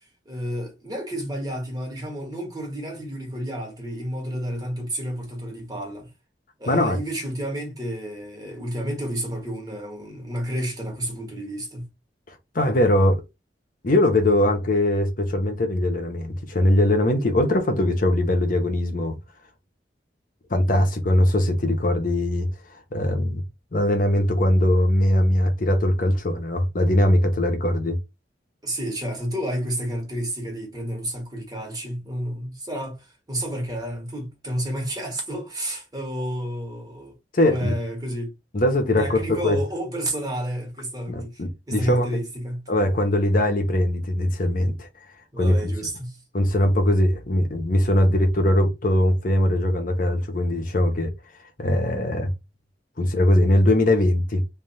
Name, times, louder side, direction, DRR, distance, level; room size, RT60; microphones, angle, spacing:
voice 1, 0.2-6.1 6.6-11.9 28.6-37.2 37.4-38.3 39.0-42.7 45.3-46.2, equal, 20° right, 1.5 m, -30 dB
voice 2, 6.7-7.0 12.3-13.2 13.8-19.2 20.5-23.4 23.7-28.0 37.3-37.7 38.5-39.6 41.1-42.1 42.7-44.9 45.4-45.6 46.3-51.1 51.6-52.3 53.0-54.4, left 1 dB, 50° left, 0.7 m, -21 dB
3.4 x 2.4 x 4.1 m
head